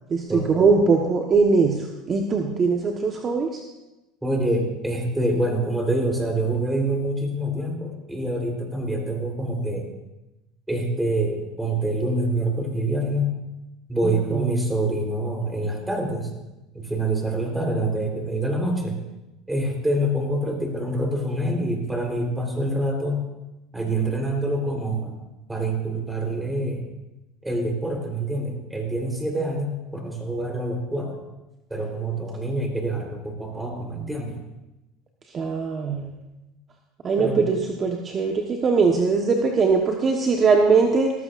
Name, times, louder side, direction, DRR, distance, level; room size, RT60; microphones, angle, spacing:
voice 1, 0.1-3.6 14.0-14.5 35.3-36.1 37.0-41.1, right 4 dB, 35° right, 2 dB, 1.2 m, -21 dB
voice 2, 4.2-9.9 10.7-13.3 13.9-16.3 16.7-19.0 19.5-23.2 23.7-25.2 25.5-26.9 27.4-31.2 31.7-34.4 37.2-37.4, right 1 dB, 5° right, 1 dB, 3.7 m, -26 dB
18.0 x 14.5 x 2.6 m, 0.99 s
supercardioid pair, 95°, 0 cm